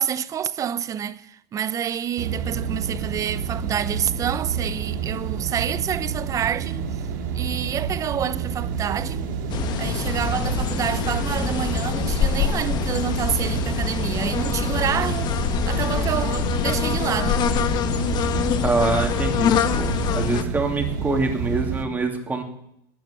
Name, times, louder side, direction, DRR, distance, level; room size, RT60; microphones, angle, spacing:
voice 1, 0.0-7.0 7.3-9.3 9.8-17.4, right 9 dB, 35° right, 0.7 m, -28 dB
sound 1, 2.2-21.8, right 6 dB, 75° right, 1.9 m, -29 dB
sound 2, 8.7-18.7, right 3 dB, 55° right, 3.9 m, -44 dB
sound 3, 9.5-20.4, left 8 dB, 45° left, 1.2 m, -25 dB
voice 2, 18.6-22.4, right 3 dB, 15° right, 2.6 m, -25 dB
12.0 x 9.0 x 9.7 m
supercardioid pair, 105°, 10 cm